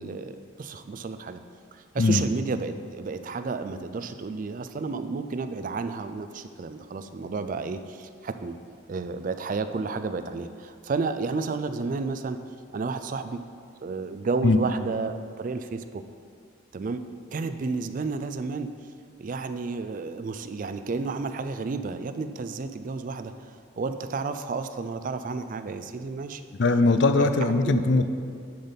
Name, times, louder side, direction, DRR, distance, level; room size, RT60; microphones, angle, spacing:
voice 1, 0.0-1.4 1.7-8.6 8.9-12.4 12.7-13.4 13.8-16.0 16.7-17.0 17.3-18.7 19.2-26.4 27.2-27.3 27.7-27.8, right 4 dB, 40° right, 10 dB, 0.3 m, -31 dB
voice 2, 26.6-28.1, left 3 dB, 60° left, 9 dB, 0.5 m, -20 dB
10.5 x 4.0 x 5.2 m, 2.3 s
head